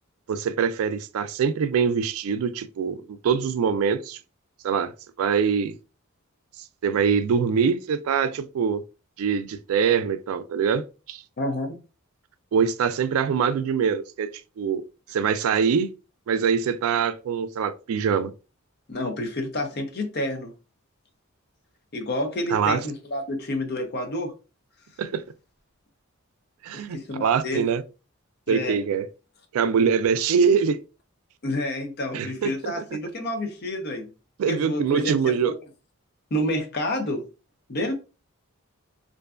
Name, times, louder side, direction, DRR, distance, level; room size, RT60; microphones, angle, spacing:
voice 1, 0.3-4.2 4.6-4.9 5.2-5.7 6.8-8.8 9.2-11.2 12.5-14.3 14.6-14.8 15.1-15.9 16.3-18.3 22.5-22.8 25.0-25.2 26.6-27.8 28.5-29.1 29.5-30.8 32.1-32.8 34.4-35.5, right 6 dB, 80° right, 0.3 m, -24 dB
voice 2, 11.4-11.8 18.9-20.5 21.9-24.3 26.7-27.6 28.5-28.8 31.4-34.1 34.5-35.2 35.4-35.5 36.3-37.3 37.7-37.9, left 1 dB, 45° left, 0.6 m, -29 dB
2.5 x 2.2 x 2.3 m
head